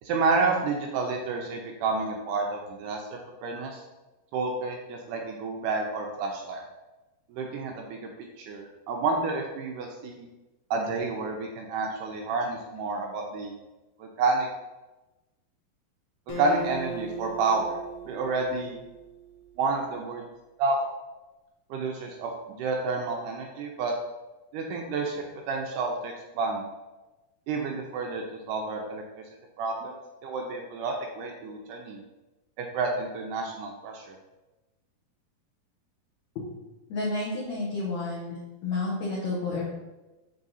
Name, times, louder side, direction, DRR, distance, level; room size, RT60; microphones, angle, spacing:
voice 1, 0.0-3.1 3.4-3.8 4.3-6.6 7.3-8.0 8.4-10.3 10.7-13.5 14.0-14.5 16.4-17.8 18.1-18.8 19.6-20.3 20.6-20.8 21.7-23.9 24.5-26.6 27.5-29.0 29.6-29.9 30.2-32.0 32.6-34.2, right 3 dB, 80° right, 1 dB, 1.9 m, -29 dB
Acoustic guitar, 16.3-19.7, right 3 dB, 90° left, 3.0 m, -38 dB
voice 2, 36.9-38.3 38.6-39.6, left 3 dB, 65° left, -6 dB, 2.0 m, -30 dB
7.0 x 3.7 x 4.0 m, 1.1 s
omnidirectional pair, 4.2 m